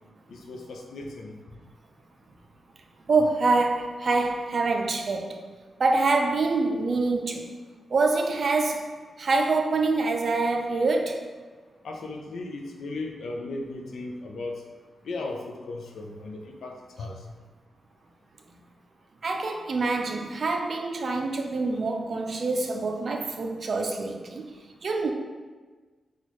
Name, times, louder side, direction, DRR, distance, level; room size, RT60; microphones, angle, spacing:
voice 1, 0.3-1.3 11.8-14.6 15.0-17.2, left 2 dB, 85° left, 2 dB, 0.4 m, -36 dB
voice 2, 3.1-5.4 5.8-7.5 7.9-8.9 9.2-11.2 19.2-24.4 24.8-25.1, right 3 dB, 60° right, 3 dB, 0.4 m, -25 dB
4.2 x 2.3 x 3.0 m, 1.4 s
cardioid pair, 85°, 0 cm